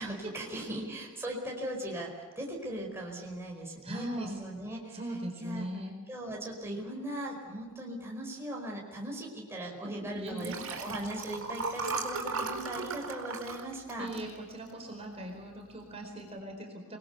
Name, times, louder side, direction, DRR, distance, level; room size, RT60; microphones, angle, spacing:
voice 1, 0.0-5.0 5.4-5.7 6.1-14.1, right 1 dB, 10° right, -1 dB, 4.8 m, -39 dB
voice 2, 3.8-4.3 4.9-5.9 9.8-10.7 13.6-13.7 14.0-17.0, right 1 dB, 25° right, 2 dB, 4.7 m, -40 dB
Liquid, 10.3-14.9 15.4-15.7 15.9-16.0, right 4 dB, 65° right, 4.6 m, -37 dB
29.0 x 21.0 x 7.1 m, 1.3 s
head